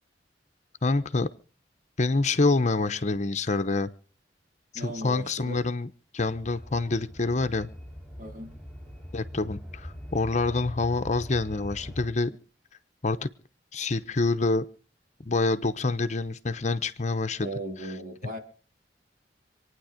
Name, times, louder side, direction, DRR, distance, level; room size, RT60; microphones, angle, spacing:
voice 1, 0.8-1.3 2.0-3.9 4.7-7.7 9.1-12.4 13.0-13.3 13.7-14.7 15.2-17.5 17.8-17.9, left 3 dB, 40° left, 11 dB, 0.8 m, -27 dB
voice 2, 4.7-5.6 8.2-8.5 17.4-18.4, right 1 dB, 50° right, 3 dB, 3.8 m, -37 dB
sound 1, 6.3-12.1, equal, ahead, 4.5 m, -42 dB
26.5 x 9.8 x 5.1 m, 0.41 s
head